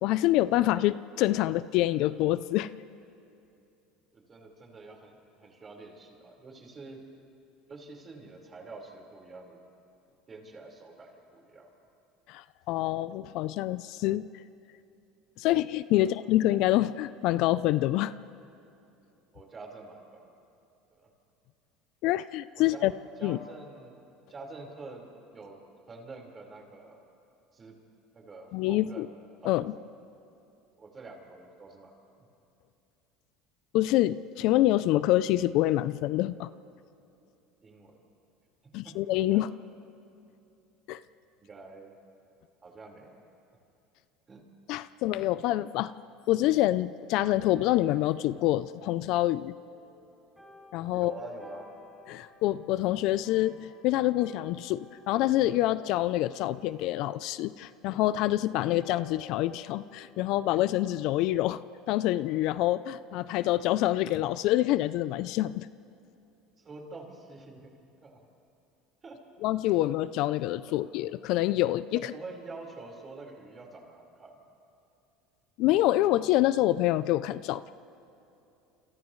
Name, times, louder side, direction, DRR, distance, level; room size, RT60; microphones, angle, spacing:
voice 1, 0.0-2.7 12.3-14.3 15.4-18.1 22.0-22.9 23.2-23.4 28.5-29.1 29.4-29.7 33.7-36.5 38.7-39.5 40.9-41.0 44.7-45.9 46.3-49.5 50.7-51.1 52.1-61.6 61.9-65.7 69.4-72.1 75.6-77.7, left 15 dB, 65° left, 15 dB, 0.4 m, -26 dB
voice 2, 4.1-7.0 7.7-9.6 10.3-11.7 16.0-16.2 19.3-20.3 20.9-21.1 22.6-22.9 23.2-24.0 24.3-25.1 25.3-25.6 25.9-27.1 27.5-27.7 28.1-29.1 29.4-29.9 30.8-32.3 37.6-37.9 38.8-38.9 39.3-39.4 41.4-41.9 42.6-43.2 44.3-44.4 50.9-51.7 66.6-68.2 69.0-69.2 70.7-70.8 71.9-74.3, right 3 dB, 25° right, 0 dB, 4.6 m, -47 dB
sound 1, 47.7-62.4, left 1 dB, ahead, 5.9 m, -55 dB
29.5 x 28.5 x 3.2 m, 2.7 s
supercardioid pair, 125°, 0 cm